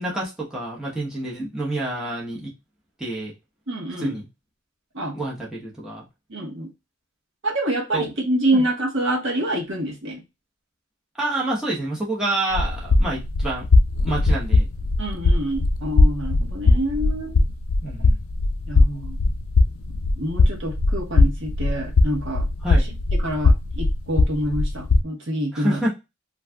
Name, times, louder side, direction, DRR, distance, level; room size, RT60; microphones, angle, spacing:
voice 1, 0.0-2.5 3.0-3.3 4.0-4.3 5.1-6.0 7.9-8.1 8.5-8.7 11.2-13.6 14.0-14.7 17.8-18.2 22.6-22.8 25.5-25.9, right 1 dB, 5° right, -5 dB, 0.8 m, -27 dB
voice 2, 3.7-4.2 4.9-5.1 6.3-6.7 7.4-10.2 15.0-17.4 18.7-19.2 20.2-22.4 23.2-25.8, right 1 dB, 65° right, 0 dB, 1.0 m, -26 dB
sound 1, 12.5-25.0, left 3 dB, 80° left, 0.5 m, -20 dB
2.6 x 2.3 x 3.3 m, 0.24 s
head